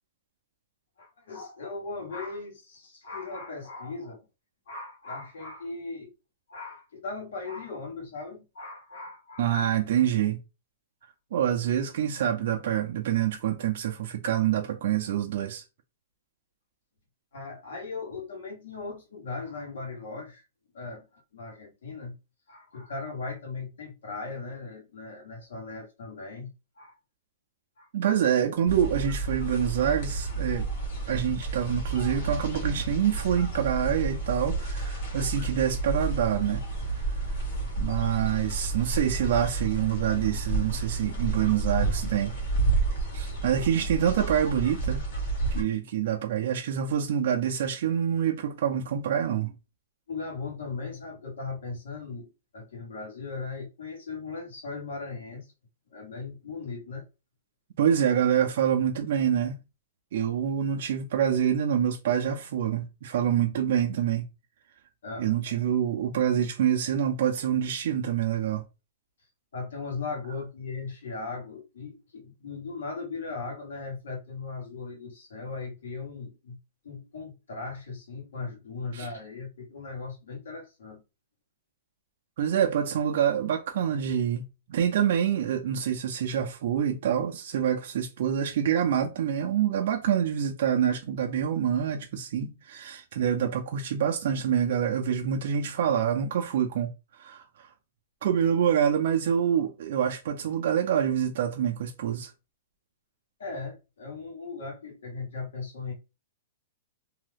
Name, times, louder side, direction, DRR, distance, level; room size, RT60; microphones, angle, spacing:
voice 1, 1.0-4.2 4.7-6.1 6.5-9.5 17.3-20.4 20.7-22.1 22.5-26.5 26.8-27.0 27.8-27.9 50.1-55.5 55.9-57.0 65.0-65.6 69.5-76.6 76.8-81.0 103.4-105.9, left 4 dB, 80° left, 1.3 m, -38 dB
voice 2, 9.4-10.4 11.3-15.6 27.9-30.7 31.1-36.6 37.8-42.3 43.1-45.0 45.5-49.5 57.8-59.6 60.1-64.3 65.2-68.6 78.9-79.1 82.4-84.4 84.7-96.9 97.2-97.7 98.2-102.3, right 9 dB, 55° right, 0.4 m, -26 dB
sound 1, 28.7-45.6, right 3 dB, 50° left, 1.2 m, -30 dB
2.7 x 2.3 x 3.3 m
hypercardioid pair, 170°, 0 cm